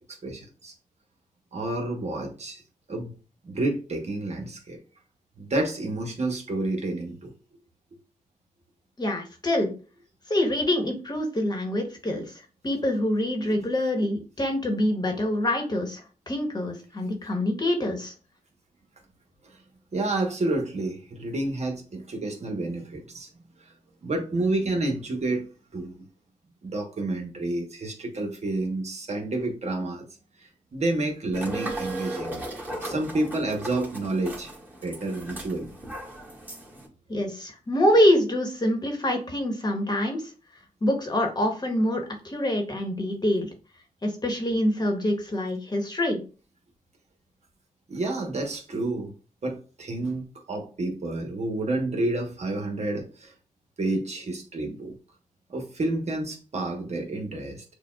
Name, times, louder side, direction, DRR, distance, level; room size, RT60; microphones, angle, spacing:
voice 1, 0.2-0.7 1.5-2.6 2.9-3.1 3.5-4.8 5.4-7.3 19.9-23.3 24.0-25.4 25.7-25.9 26.6-30.0 30.4-32.3 32.8-34.5 34.8-35.7 47.9-49.1 49.4-53.3 53.8-54.9 55.5-57.6, right 2 dB, 50° right, 2 dB, 1.1 m, -29 dB
voice 2, 9.0-9.7 10.3-12.3 12.6-16.0 16.3-18.1 37.1-40.2 40.8-43.5 44.0-46.2, left 1 dB, 30° left, 3 dB, 1.1 m, -25 dB
sound 1, 31.3-36.9, right 1 dB, 15° right, 1.7 m, -37 dB
6.6 x 2.3 x 2.4 m, 0.36 s
cardioid pair, 75°, 14 cm